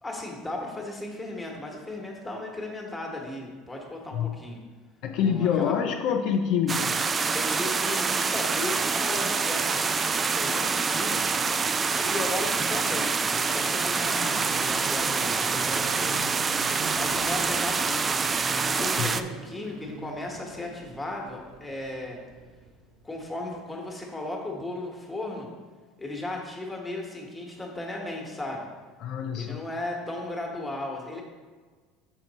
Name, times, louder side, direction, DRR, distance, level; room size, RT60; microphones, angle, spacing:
voice 1, 0.0-4.6 5.2-5.9 7.3-9.8 10.2-11.4 12.0-16.2 16.9-18.0 18.6-22.2 23.0-25.5 26.0-28.7 29.3-31.2, left 2 dB, 10° left, 0 dB, 1.3 m, -36 dB
voice 2, 5.0-7.0 19.0-19.1 29.0-29.6, left 8 dB, 60° left, 5 dB, 0.4 m, -26 dB
sound 1, 6.7-19.2, right 5 dB, 25° right, 0.3 m, -26 dB
sound 2, 8.3-23.5 23.7-23.8, right 3 dB, 60° right, 0.8 m, -44 dB
6.5 x 4.5 x 4.1 m, 1.5 s
supercardioid pair, 115°, 0 cm